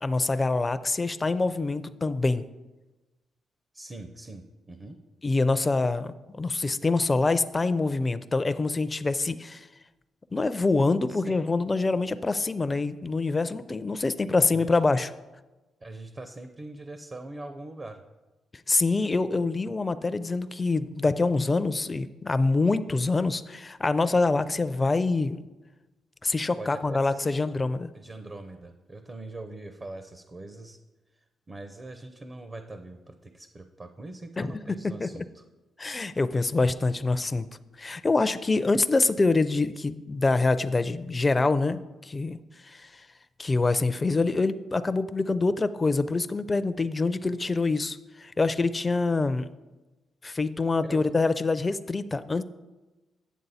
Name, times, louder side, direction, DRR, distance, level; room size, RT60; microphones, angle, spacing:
voice 1, 0.0-2.5 5.2-9.7 10.3-15.1 18.7-25.4 26.2-27.9 34.4-34.5 34.8-35.1 35.8-37.5 37.8-42.4 42.6-42.9 43.4-49.5 50.2-52.4, left 3 dB, 25° left, 12 dB, 0.4 m, -25 dB
voice 2, 3.7-5.0 11.1-11.3 14.5-14.8 15.8-18.0 26.6-27.4 27.9-30.8 31.1-35.4 50.8-51.0, right 2 dB, 30° right, 7 dB, 0.6 m, -42 dB
9.2 x 7.3 x 4.1 m, 1.1 s
cardioid pair, 100°, 0 cm